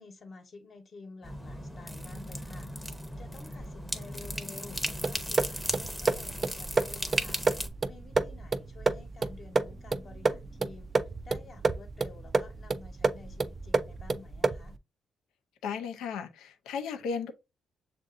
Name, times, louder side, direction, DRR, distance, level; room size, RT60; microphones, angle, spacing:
voice 1, 0.0-2.9 3.2-7.4 7.8-10.9 11.2-14.8, left 3 dB, 45° left, 1.0 m, -51 dB
sound 1, 1.2-7.7, equal, 5° left, 0.7 m, -36 dB
sound 2, 5.0-14.8, right 4 dB, 35° right, 0.4 m, -30 dB
voice 2, 15.6-17.3, left 6 dB, 85° left, 0.6 m, -35 dB
6.6 x 2.5 x 2.5 m
cardioid pair, 90°, 0 cm